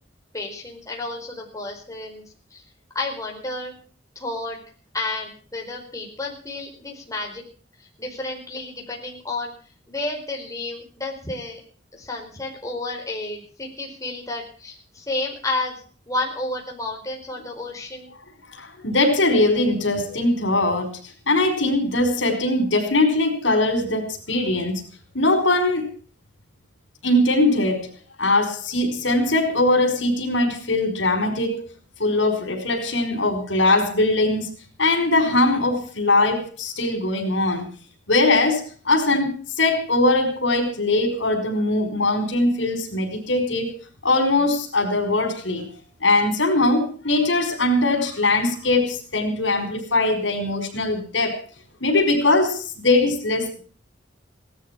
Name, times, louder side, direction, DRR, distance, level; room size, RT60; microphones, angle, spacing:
voice 1, 0.3-2.2 2.5-2.6 2.9-3.7 4.1-4.6 4.9-7.4 8.0-9.5 9.9-11.6 11.9-18.1, left 2 dB, 20° left, 0 dB, 4.7 m, -31 dB
voice 2, 18.5-20.9 21.3-24.8 25.1-25.9 27.0-27.9 28.2-31.6 32.0-34.5 34.8-37.7 38.1-45.6 46.0-51.4 51.8-53.6, left 2 dB, 80° left, 5 dB, 5.1 m, -21 dB
18.5 x 13.0 x 6.1 m, 0.41 s
head